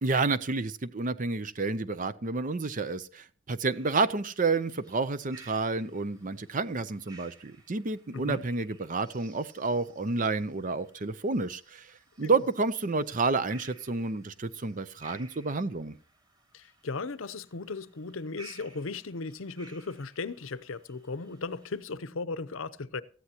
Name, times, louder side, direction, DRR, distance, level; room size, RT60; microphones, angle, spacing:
voice 1, 0.0-15.9, right 3 dB, 35° right, 0.6 m, -30 dB
sound 1, 3.7-21.8, right 3 dB, 20° right, 3.0 m, -57 dB
voice 2, 8.1-8.4 12.2-12.3 16.5-23.0, left 3 dB, 65° left, 0.7 m, -36 dB
18.0 x 14.0 x 2.9 m
head